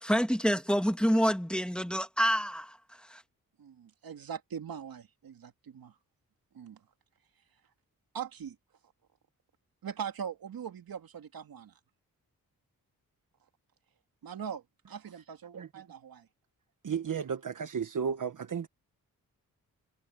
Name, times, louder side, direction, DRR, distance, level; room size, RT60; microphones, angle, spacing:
voice 1, 0.0-3.2, equal, 5° left, 2.2 m, -28 dB
voice 2, 3.6-6.0 6.5-6.8 8.1-8.6 9.8-11.8 14.2-16.3, right 7 dB, 75° right, 2.6 m, -41 dB
voice 3, 16.8-18.7, right 7 dB, 60° right, 1.5 m, -33 dB
cardioid pair, 55°, 36 cm